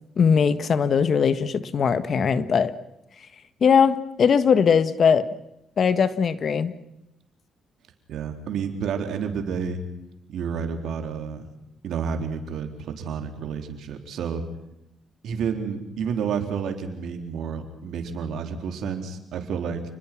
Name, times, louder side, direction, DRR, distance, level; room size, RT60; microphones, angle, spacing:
voice 1, 0.2-2.7 3.6-5.3 5.8-6.7, left 6 dB, 50° left, 13 dB, 1.5 m, -20 dB
voice 2, 8.1-9.8 10.3-11.5 11.8-14.4 15.2-19.8, right 6 dB, 75° right, 6 dB, 3.8 m, -30 dB
29.0 x 21.0 x 6.1 m, 0.86 s
cardioid pair, 90°, 0 cm